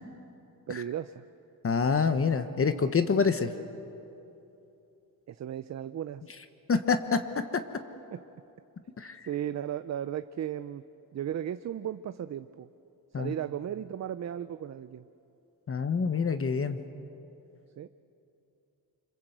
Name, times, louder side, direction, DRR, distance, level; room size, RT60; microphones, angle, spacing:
voice 1, 0.7-1.2 5.3-6.3 8.1-8.2 9.3-10.8 11.1-12.7 13.1-15.1 17.8-17.9, right 10 dB, 45° right, 12 dB, 0.6 m, -35 dB
voice 2, 1.6-3.5 6.7-7.2 9.0-9.3 13.1-13.3 15.7-16.8, left 5 dB, 35° left, 9 dB, 1.1 m, -26 dB
26.5 x 26.0 x 8.0 m, 2.8 s
cardioid pair, 125°, 37 cm